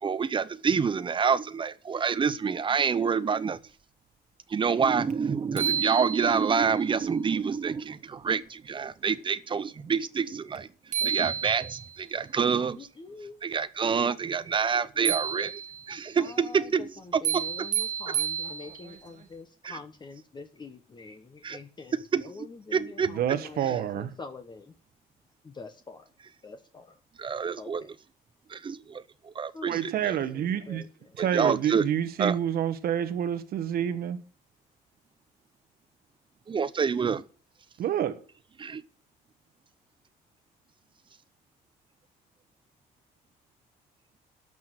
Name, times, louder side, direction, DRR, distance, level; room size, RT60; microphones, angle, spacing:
voice 1, 0.0-3.6 4.5-10.7 11.0-12.8 13.4-15.6 15.9-17.7 19.6-19.8 21.4-21.6 22.1-22.2 22.7-23.1 27.2-27.8 28.5-30.2 31.2-31.8 32.2-32.4 36.5-37.2 38.6-38.8, right 6 dB, 30° right, 0.8 m, -27 dB
sound 1, 5.1-5.2 5.6-6.7 10.6-10.7 10.9-12.0 15.1-16.0 17.2-19.0, right 8 dB, 45° right, 1.4 m, -30 dB
voice 2, 12.8-13.4 14.9-15.0 16.1-24.8 25.4-26.1 26.4-27.0 27.6-27.9 29.5-31.2, left 3 dB, 25° left, 1.2 m, -45 dB
voice 3, 23.1-24.1 29.7-30.8 31.2-34.2 37.8-38.2, right 10 dB, 65° right, 1.3 m, -28 dB
12.0 x 6.2 x 7.6 m
cardioid pair, 110°, 17 cm